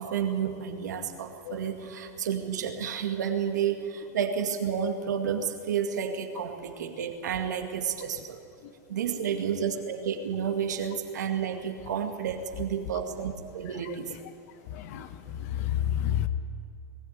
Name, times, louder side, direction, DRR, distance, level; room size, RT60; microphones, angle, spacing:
voice 1, 0.0-8.4 8.9-14.1, right 8 dB, 90° right, 6 dB, 2.1 m, -31 dB
voice 2, 9.2-9.7 13.7-14.0 14.7-16.3, left 11 dB, 60° left, 12 dB, 1.3 m, -31 dB
20.5 x 15.0 x 9.5 m, 2.5 s
supercardioid pair, 125°, 9 cm